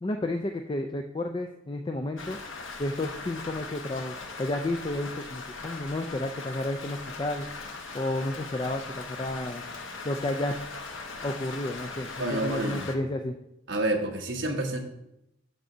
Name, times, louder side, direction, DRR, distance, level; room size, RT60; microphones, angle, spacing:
voice 1, 0.0-2.4 2.8-7.5 7.9-9.6 10.0-10.5 11.2-13.3, left 1 dB, 25° left, 5 dB, 0.3 m, -31 dB
Rain, 2.2-13.0, left 4 dB, 80° left, 1.0 m, -40 dB
voice 2, 12.2-12.8 13.7-14.8, right 1 dB, 65° right, 1 dB, 1.3 m, -28 dB
6.1 x 5.1 x 6.6 m, 0.86 s
head